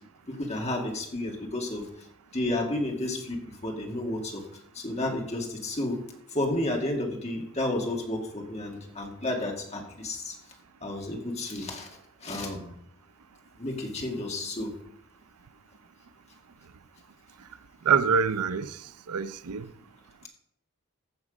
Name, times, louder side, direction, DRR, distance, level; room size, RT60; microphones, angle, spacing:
voice 1, 0.3-1.9 2.3-4.4 4.7-6.0 6.3-10.4 10.8-11.9 12.2-12.7 13.6-14.7, left 1 dB, 30° left, 2.1 m, -31 dB
voice 2, 17.9-18.7 19.1-19.7, right 6 dB, 90° right, 0.6 m, -25 dB
15.0 x 6.0 x 5.3 m
head